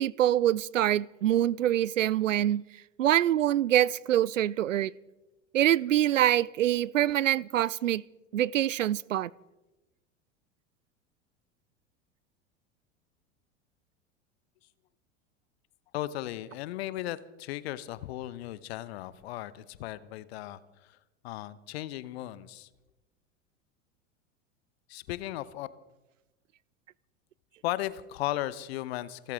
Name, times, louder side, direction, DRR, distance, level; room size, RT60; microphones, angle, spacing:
voice 1, 0.0-2.6 3.0-4.9 5.5-8.0 8.3-9.3, right 12 dB, 75° right, 0.5 m, -25 dB
voice 2, 15.9-21.0 21.2-22.7 24.9-25.7 27.6-29.3, left 15 dB, 55° left, 0.9 m, -36 dB
28.5 x 13.5 x 3.6 m
figure-of-eight pair, 80°, 38 cm